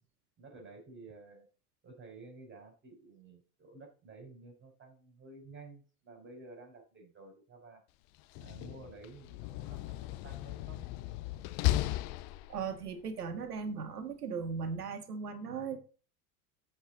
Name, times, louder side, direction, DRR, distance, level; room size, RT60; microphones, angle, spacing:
voice 1, 0.4-1.5 1.8-7.8 8.4-10.8, right 3 dB, 25° right, 2 dB, 5.2 m, -52 dB
Slam, 8.2-12.9, left 16 dB, 45° left, 0.7 m, -36 dB
voice 2, 12.5-15.8, right 5 dB, 80° right, 8 dB, 1.6 m, -37 dB
15.0 x 5.5 x 3.9 m, 0.36 s
figure-of-eight pair, 75°, 46 cm